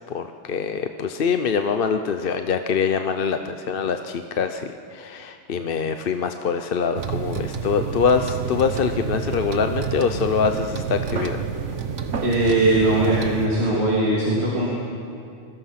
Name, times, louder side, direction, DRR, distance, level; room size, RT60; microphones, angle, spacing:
voice 1, 0.1-11.4, left 6 dB, 55° left, 7 dB, 0.9 m, -24 dB
sound 1, 7.0-13.5, right 6 dB, 80° right, 1.5 m, -29 dB
voice 2, 12.2-14.7, right 2 dB, 60° right, -6 dB, 3.2 m, -20 dB
26.0 x 21.0 x 5.8 m, 2.5 s
omnidirectional pair, 1.2 m